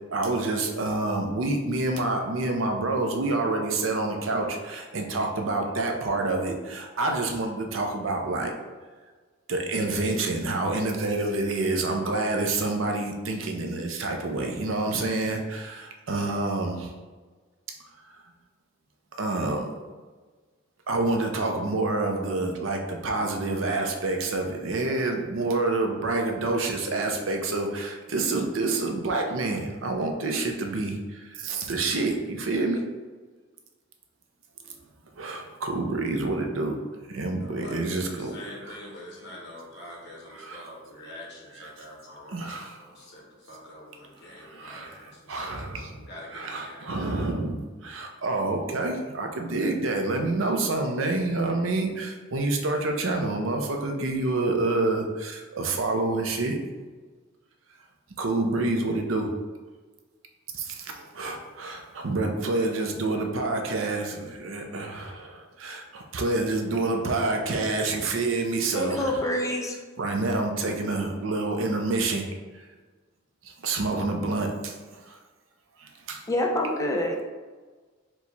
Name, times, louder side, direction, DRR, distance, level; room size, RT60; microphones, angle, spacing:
voice 1, 0.1-8.5 9.5-16.9 19.1-19.7 20.9-32.8 34.6-34.7 35.2-36.8 37.1-38.3 38.6-38.8 40.3-40.7 41.6-41.7 42.3-42.8 44.4-56.6 58.2-59.3 60.5-69.0 70.0-72.3 73.6-74.7 75.1-75.2 75.8-76.2, right 2 dB, 80° right, 3 dB, 0.6 m, -28 dB
voice 2, 37.4-45.6 46.0-47.0, left 1 dB, 60° left, -2 dB, 1.1 m, -45 dB
voice 3, 68.7-69.8 76.3-77.2, left 1 dB, 15° left, 1 dB, 0.5 m, -26 dB
4.6 x 2.3 x 4.0 m, 1.4 s
head